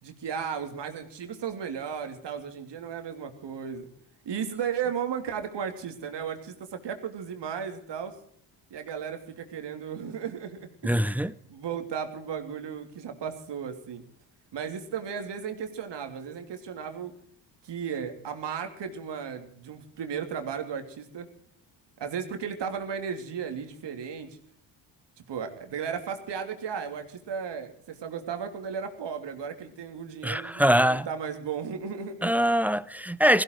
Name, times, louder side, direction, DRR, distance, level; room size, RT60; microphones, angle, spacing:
voice 1, 0.0-3.9 4.2-8.1 8.7-10.9 11.2-14.0 14.5-17.1 17.6-21.3 22.0-24.4 25.3-32.3, right 7 dB, 60° right, 3.1 m, -35 dB
voice 2, 10.8-11.3 30.2-31.1 32.2-33.4, equal, 5° right, 0.8 m, -23 dB
17.0 x 15.5 x 4.7 m
supercardioid pair, 65°, 47 cm